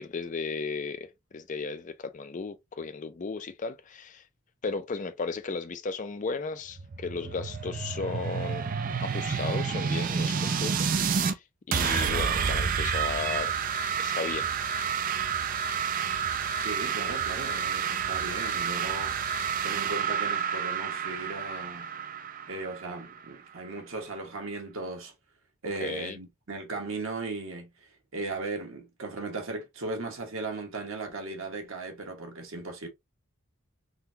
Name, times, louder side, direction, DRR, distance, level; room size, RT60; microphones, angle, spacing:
voice 1, 0.0-4.2 4.6-8.7 9.0-10.9 11.2-13.5 14.0-14.5 25.8-26.2, left 4 dB, 35° left, 0.4 m, -35 dB
sound 1, 6.7-11.3 11.7-23.3, right 6 dB, 40° right, 0.3 m, -29 dB
voice 2, 16.5-19.2 19.6-21.9 22.5-25.1 25.6-32.9, right 3 dB, 65° right, 1.1 m, -37 dB
3.8 x 2.2 x 2.7 m
head